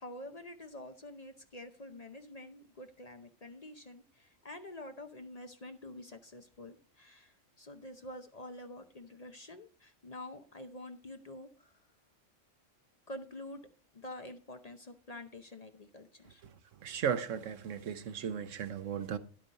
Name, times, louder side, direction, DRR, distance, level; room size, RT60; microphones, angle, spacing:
voice 1, 0.0-11.8 13.1-13.6 13.9-16.4, left 1 dB, 35° left, 0.7 m, -47 dB
voice 2, 16.8-19.2, right 8 dB, 80° right, 1.2 m, -35 dB
11.0 x 8.4 x 4.1 m
omnidirectional pair, 1.3 m